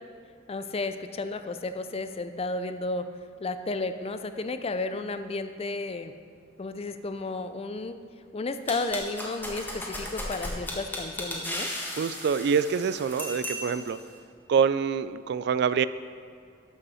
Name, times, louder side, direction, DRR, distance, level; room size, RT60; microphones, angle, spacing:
voice 1, 0.5-3.1 3.4-6.1 6.6-8.0 8.3-11.7, left 3 dB, 30° left, 10 dB, 0.5 m, -32 dB
sound 1, 8.7-14.0, left 1 dB, 10° left, 1.5 m, -35 dB
voice 2, 12.0-14.0 14.5-15.8, right 6 dB, 60° right, 15 dB, 0.3 m, -25 dB
12.5 x 5.4 x 5.6 m, 2.4 s
head